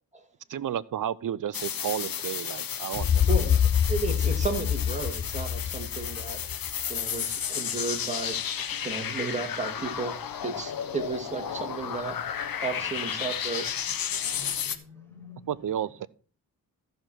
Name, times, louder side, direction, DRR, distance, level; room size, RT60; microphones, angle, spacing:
voice 1, 0.5-3.3 15.5-16.1, right 10 dB, 60° right, 0.7 m, -32 dB
sound 1, 1.5-14.8, left 8 dB, 65° left, 1.1 m, -33 dB
sound 2, 2.9-6.8, left 9 dB, 35° left, 0.5 m, -26 dB
voice 2, 3.3-3.6 3.9-6.4 6.9-8.4 8.8-10.1 10.4-12.2 12.6-13.7, right 3 dB, 20° right, 2.5 m, -33 dB
voice 3, 14.2-15.8, left 5 dB, 5° left, 5.6 m, -49 dB
14.0 x 6.6 x 4.5 m
cardioid pair, 105°, 37 cm